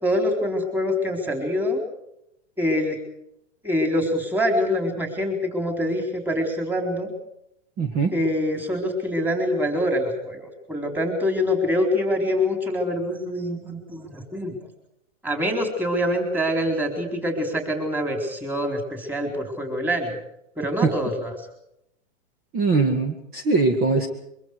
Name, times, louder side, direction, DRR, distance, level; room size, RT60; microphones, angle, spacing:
voice 1, 0.0-1.8 2.6-3.0 3.6-7.1 8.1-14.5 15.2-20.1 20.6-21.3, left 1 dB, 5° right, 3 dB, 4.2 m, -25 dB
voice 2, 7.8-8.2 20.8-20.9 22.5-24.1, right 4 dB, 25° right, 5 dB, 2.2 m, -21 dB
24.0 x 24.0 x 4.9 m, 0.78 s
hypercardioid pair, 145°, 37 cm